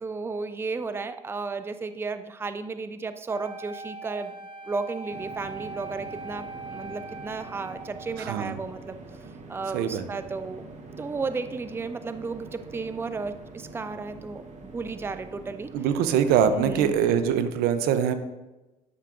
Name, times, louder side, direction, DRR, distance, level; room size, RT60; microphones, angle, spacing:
voice 1, 0.0-4.4 4.6-9.0 9.5-10.6 11.0-15.7 16.5-16.9, right 4 dB, 15° right, 11 dB, 0.4 m, -33 dB
Wind instrument woodwind instrument, 3.3-8.4, right 3 dB, 30° right, 0.8 m, -41 dB
sound 1, 5.1-17.4, right 3 dB, 50° right, 1.1 m, -45 dB
voice 2, 8.2-8.6 9.7-10.0 15.7-18.1, right 8 dB, 75° right, 11 dB, 0.6 m, -23 dB
11.0 x 5.7 x 2.5 m, 1.1 s
supercardioid pair, 75°, 16 cm